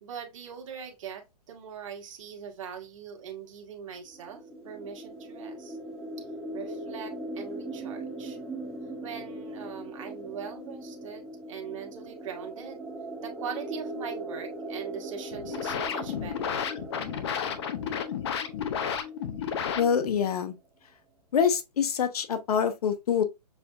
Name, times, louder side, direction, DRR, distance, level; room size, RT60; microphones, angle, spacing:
voice 1, 0.0-5.8 6.2-6.3 6.5-8.4 9.0-12.9 13.2-16.6, right 7 dB, 50° right, 1.4 m, -41 dB
sound 1, 4.1-19.7, right 1 dB, 5° right, 0.3 m, -40 dB
sound 2, 15.3-20.3, left 8 dB, 40° left, 0.7 m, -32 dB
voice 2, 19.8-20.5 21.3-23.2, left 7 dB, 65° left, 1.0 m, -25 dB
6.7 x 2.6 x 2.3 m
hypercardioid pair, 155°, 21 cm